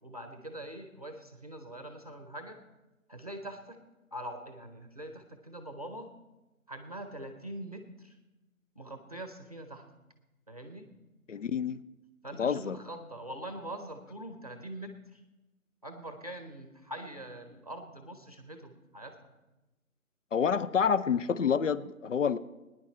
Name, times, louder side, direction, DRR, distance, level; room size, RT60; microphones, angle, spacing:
voice 1, 0.0-2.6 3.1-3.8 4.1-6.1 6.7-8.2 8.8-9.8 10.5-10.9 12.2-15.2 15.8-19.3, right 1 dB, 25° right, 6 dB, 0.8 m, -43 dB
voice 2, 11.3-11.8 12.4-12.8 20.3-22.4, left 7 dB, 60° left, 15 dB, 0.6 m, -28 dB
19.0 x 10.0 x 4.3 m, 1.1 s
figure-of-eight pair, 165°, 43 cm